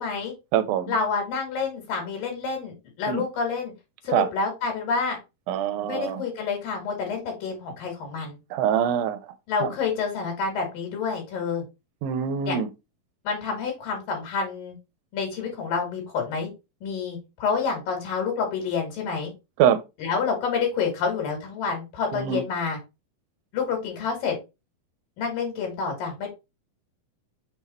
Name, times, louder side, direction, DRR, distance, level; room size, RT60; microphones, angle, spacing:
voice 1, 0.0-0.3 0.9-3.7 4.0-5.2 5.8-8.4 9.5-11.6 12.5-12.6 13.3-14.7 15.1-16.5 16.8-19.3 20.0-22.8 23.5-24.4 25.2-26.3, left 5 dB, 75° left, 3.5 m, -28 dB
voice 2, 0.5-0.9 3.1-3.2 4.1-4.3 5.5-6.2 8.5-9.2 9.6-9.7 12.0-12.7 19.6-19.8 22.1-22.4, right 9 dB, 80° right, 2.5 m, -24 dB
6.2 x 3.6 x 4.2 m
omnidirectional pair, 4.2 m